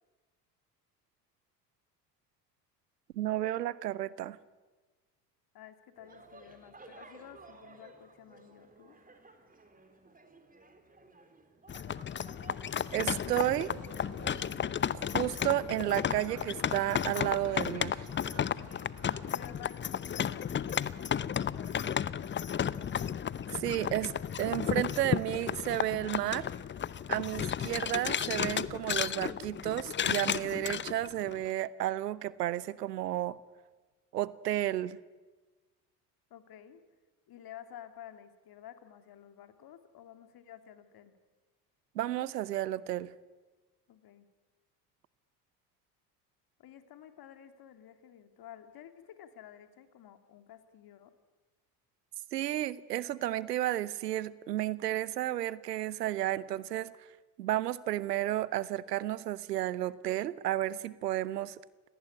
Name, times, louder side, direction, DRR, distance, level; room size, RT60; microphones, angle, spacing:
voice 1, 3.2-4.4 12.9-13.7 14.9-18.0 23.5-24.1 24.4-26.5 27.1-33.4 34.1-35.0 41.9-43.1 52.3-56.9 57.4-61.6, right 13 dB, 85° right, 19 dB, 0.9 m, -32 dB
voice 2, 5.5-9.0 19.3-22.0 36.3-36.8 37.3-41.1 43.9-44.2 46.6-51.1, left 10 dB, 50° left, 8 dB, 2.7 m, -52 dB
sound 1, 6.0-14.1, right 3 dB, 15° right, 3.9 m, -55 dB
sound 2, 11.7-31.5, left 8 dB, 25° left, 0.7 m, -33 dB
sound 3, 13.0-19.5, right 9 dB, 35° right, 1.3 m, -52 dB
27.5 x 19.0 x 9.7 m, 1.3 s
hypercardioid pair, 65°, 47 cm